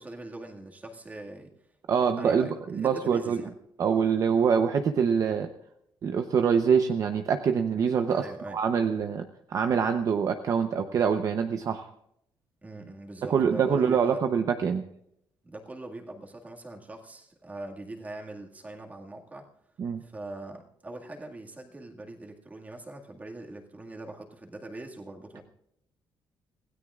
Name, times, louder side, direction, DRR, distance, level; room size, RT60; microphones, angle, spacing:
voice 1, 0.0-1.5 2.0-3.5 8.1-8.6 12.6-14.2 15.4-19.5 20.0-25.4, right 2 dB, 20° right, 1 dB, 2.0 m, -42 dB
voice 2, 1.9-3.4 3.8-5.5 6.0-8.2 8.5-11.9 13.3-14.8 19.8-20.0, right 6 dB, 40° right, 7 dB, 0.8 m, -25 dB
26.0 x 16.5 x 2.4 m, 0.74 s
cardioid pair, 170°, 8 cm